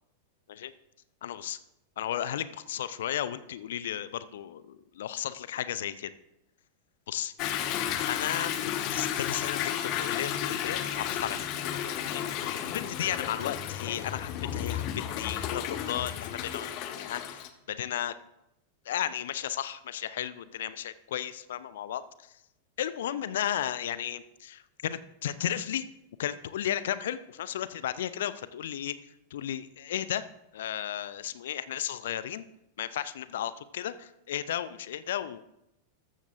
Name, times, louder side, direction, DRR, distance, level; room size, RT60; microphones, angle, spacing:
voice 1, 1.2-1.6 2.0-6.1 7.1-7.3 8.1-11.4 12.1-12.2 12.6-17.4 17.7-18.1 18.9-22.0 22.8-25.8 26.2-28.9 29.3-30.2 30.5-32.4 32.8-35.4, left 10 dB, 60° left, 15 dB, 0.5 m, -34 dB
Toilet flush / Drip / Trickle dribble, 7.4-17.5, left 10 dB, 40° left, 1.0 m, -33 dB
14.0 x 13.5 x 2.6 m, 0.84 s
figure-of-eight pair, 90°, 0 cm